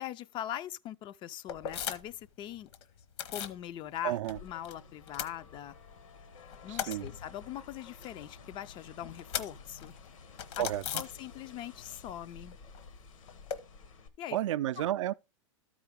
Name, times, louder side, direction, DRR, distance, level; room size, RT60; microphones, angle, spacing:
voice 1, 0.0-2.7 3.3-5.8 6.6-9.9 10.5-10.6 10.9-12.6 14.2-14.4 14.8-14.9, left 11 dB, 30° left, 0.4 m, -41 dB
sound 1, 1.5-2.3 2.5-3.6 3.9-4.7 5.0-6.0 6.3-11.7 12.0-13.6, left 9 dB, 55° left, 1.0 m, -40 dB
voice 2, 4.0-4.4 6.7-7.1 10.6-10.8 14.3-15.1, right 13 dB, 70° right, 0.4 m, -31 dB
sound 2, 4.3-14.1, left 4 dB, 80° left, 1.5 m, -53 dB
13.0 x 4.9 x 3.5 m
hypercardioid pair, 115°, 17 cm